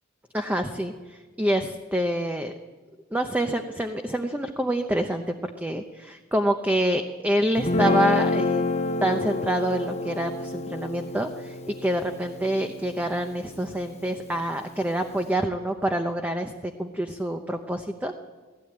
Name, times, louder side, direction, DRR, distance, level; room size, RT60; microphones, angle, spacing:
voice 1, 0.3-2.5 3.1-5.4 5.6-8.6 9.0-18.1, right 1 dB, 10° right, 5 dB, 0.8 m, -27 dB
Guitar, 7.6-13.9, left 3 dB, 30° left, 0.9 m, -28 dB
18.5 x 16.0 x 8.9 m, 1.4 s
head